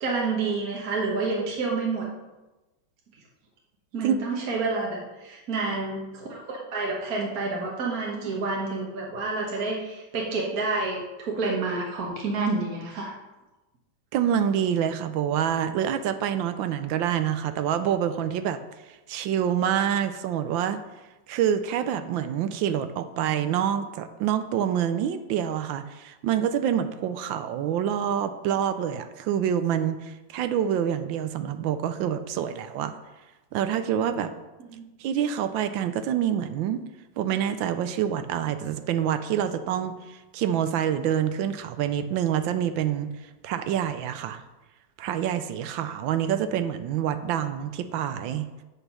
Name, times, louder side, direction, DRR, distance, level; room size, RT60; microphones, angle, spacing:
voice 1, 0.0-2.0 3.9-13.1 34.7-34.8, right 3 dB, 50° right, -2 dB, 1.6 m, -29 dB
voice 2, 14.1-18.6 18.9-20.8 21.3-32.9 33.5-34.3 35.0-36.8 37.2-43.1 43.4-44.4 45.0-48.5, right 9 dB, 75° right, 10 dB, 1.3 m, -26 dB
8.2 x 5.9 x 5.5 m, 1.1 s
omnidirectional pair, 2.2 m